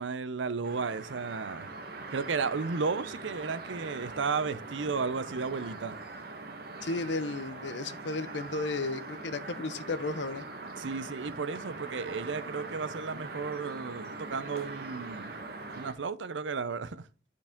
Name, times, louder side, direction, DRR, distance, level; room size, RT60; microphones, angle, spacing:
voice 1, 0.0-1.7 2.1-6.0 10.8-15.3 15.7-17.1, right 4 dB, 80° right, 0.6 m, -33 dB
sound 1, 0.6-15.9, right 3 dB, 55° right, 1.2 m, -42 dB
voice 2, 6.8-10.5, left 3 dB, 70° left, 0.7 m, -34 dB
9.3 x 4.8 x 3.6 m
head